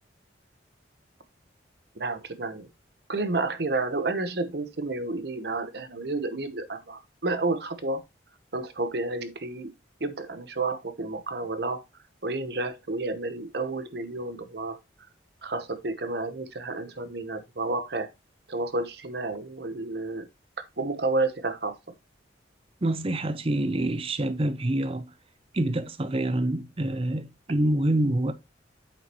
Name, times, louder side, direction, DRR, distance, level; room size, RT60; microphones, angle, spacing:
voice 1, 2.0-2.7 3.1-8.0 8.5-9.7 10.0-11.8 12.2-14.8 15.4-18.1 18.5-20.3 20.8-21.8, right 2 dB, 55° right, 0.9 m, -30 dB
voice 2, 22.8-25.1 25.5-28.3, right 1 dB, 30° right, 0.6 m, -26 dB
8.5 x 5.6 x 3.0 m
head